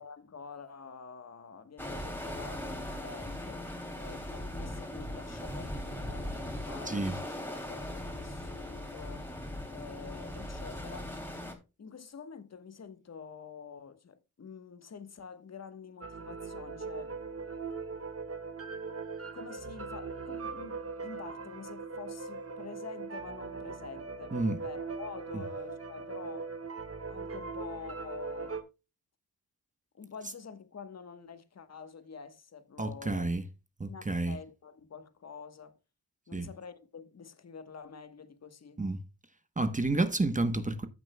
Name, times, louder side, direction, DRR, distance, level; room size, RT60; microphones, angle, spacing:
voice 1, 0.0-11.2 11.8-17.2 19.3-26.5 27.1-28.6 29.9-33.3 33.9-35.8 36.3-38.8, left 5 dB, 45° left, 1.2 m, -47 dB
sound 1, 1.8-11.5, left 1 dB, 5° left, 2.7 m, -39 dB
voice 2, 6.8-7.2 24.3-24.6 25.3-25.4 32.8-33.4 33.8-34.4 36.3-36.5 38.8-39.0 39.6-40.9, right 2 dB, 20° right, 1.0 m, -30 dB
sound 2, 16.0-28.6, right 4 dB, 40° right, 1.4 m, -40 dB
15.0 x 6.1 x 2.2 m
cardioid pair, 90°, 37 cm